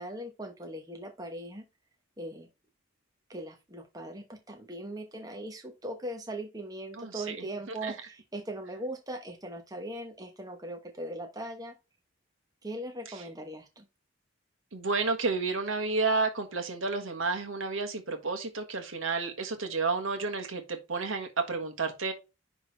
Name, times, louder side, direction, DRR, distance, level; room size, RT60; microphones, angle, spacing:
voice 1, 0.0-1.6 2.2-2.5 3.3-11.7 12.6-13.9, right 1 dB, 20° right, 1.0 m, -40 dB
voice 2, 7.0-7.4 7.8-7.9 14.7-22.1, right 4 dB, 85° right, 1.5 m, -31 dB
10.5 x 3.5 x 3.3 m
head